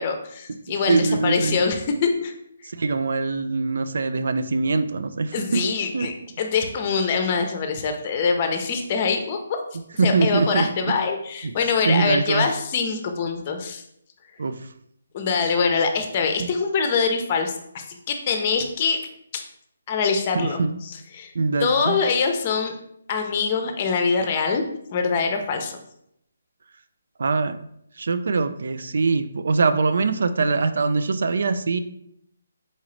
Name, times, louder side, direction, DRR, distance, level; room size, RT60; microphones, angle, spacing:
voice 1, 0.0-2.3 5.3-9.6 10.0-13.8 15.1-19.0 19.3-19.4 19.9-21.3 21.6-22.7 23.1-24.6 24.9-25.8, left 5 dB, 35° left, 5 dB, 0.6 m, -24 dB
voice 2, 0.7-1.6 2.8-6.1 10.0-10.9 11.9-12.5 14.4-14.6 16.4-16.5 20.3-20.8 21.4-22.0 27.2-27.6 28.0-31.8, right 4 dB, 70° right, 11 dB, 0.3 m, -23 dB
4.0 x 3.7 x 3.2 m, 0.73 s
hypercardioid pair, 155°, 0 cm